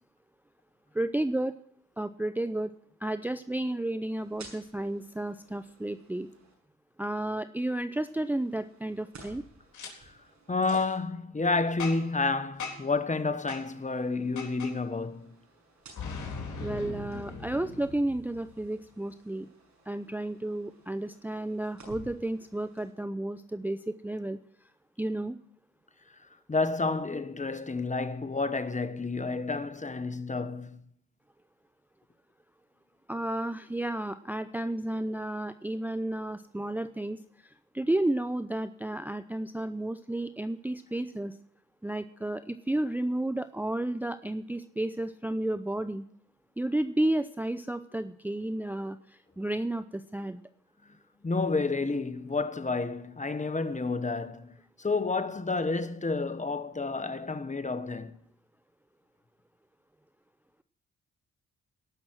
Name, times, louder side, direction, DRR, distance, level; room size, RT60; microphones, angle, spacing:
voice 1, 0.9-1.5 2.0-2.7 3.0-6.3 7.0-9.4 16.6-19.5 19.9-24.4 25.0-25.4 33.1-41.4 41.8-46.0 46.6-50.4, right 1 dB, 5° right, 0.6 m, -32 dB
sound 1, 4.1-6.5 8.0-11.0 13.5-17.9 18.3-22.9, right 2 dB, 65° right, 6.3 m, -55 dB
Boom, 9.7-9.9 10.6-10.8 11.8-12.2 12.6-13.0 13.5-13.6 14.4-14.7 16.0-18.7, left 4 dB, 70° left, 3.9 m, -39 dB
voice 2, 10.5-15.3 26.5-30.8 51.2-58.2, left 3 dB, 25° left, 1.2 m, -30 dB
18.0 x 6.1 x 7.6 m
supercardioid pair, 60°, 30 cm